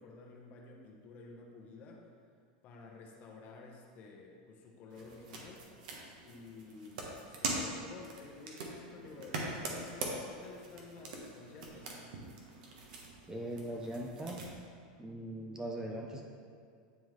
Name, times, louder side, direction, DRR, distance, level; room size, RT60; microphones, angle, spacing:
voice 1, 0.0-2.1 2.6-5.7 6.2-12.0, left 4 dB, 40° left, 0 dB, 0.9 m, -52 dB
sound 1, 4.9-14.5, right 2 dB, 70° right, 1.1 m, -43 dB
voice 2, 13.3-14.5 15.0-16.3, right 1 dB, 15° right, 0 dB, 0.5 m, -40 dB
9.3 x 3.5 x 3.1 m, 2.1 s
supercardioid pair, 135°, 4 cm